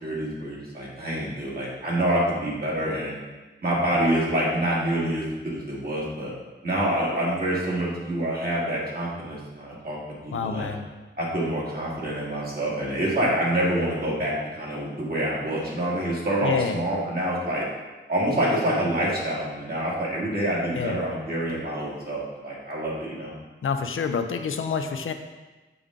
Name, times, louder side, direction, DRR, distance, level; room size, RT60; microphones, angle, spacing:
voice 1, 0.0-3.2 3.6-6.3 6.6-10.7 11.2-17.6 18.1-23.3, right 1 dB, 50° right, -6 dB, 2.1 m, -27 dB
voice 2, 10.3-10.9 16.4-16.8 20.7-21.0 23.6-25.1, left 5 dB, 90° left, 6 dB, 0.5 m, -27 dB
6.9 x 5.2 x 3.7 m, 1.2 s
wide cardioid pair, 100°, 20 cm